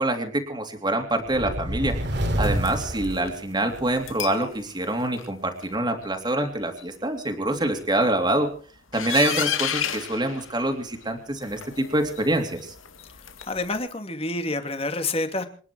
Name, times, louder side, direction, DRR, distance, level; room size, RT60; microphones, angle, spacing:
voice 1, 0.0-1.9 2.4-8.5 8.9-12.7, right 1 dB, 20° right, 4 dB, 3.0 m, -25 dB
sound 1, 1.2-4.0, right 1 dB, 55° right, 3.0 m, -28 dB
sound 2, 2.4-3.3 4.0-4.5 4.8-5.3 5.6-5.7 6.0-6.1 6.4-6.5 6.8-6.9 7.2-7.3 7.6-8.1 8.9-11.0 11.4-13.8, left 9 dB, 90° left, 2.4 m, -33 dB
voice 2, 13.4-15.5, left 2 dB, 30° left, 7 dB, 2.5 m, -28 dB
27.5 x 11.0 x 4.7 m, 0.43 s
head